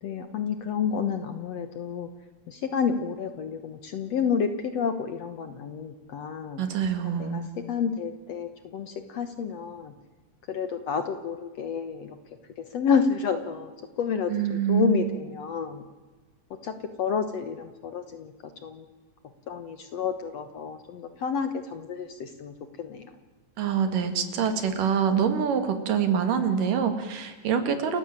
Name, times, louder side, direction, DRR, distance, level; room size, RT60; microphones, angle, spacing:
voice 1, 0.0-2.1 2.5-6.6 7.0-9.9 10.5-12.2 12.6-15.8 16.6-18.9 19.5-23.2, left 6 dB, 60° left, 9 dB, 1.9 m, -30 dB
voice 2, 6.6-7.5 14.3-15.0 23.6-28.0, right 7 dB, 70° right, 9 dB, 3.6 m, -25 dB
29.0 x 15.5 x 8.9 m, 1.3 s
omnidirectional pair, 4.0 m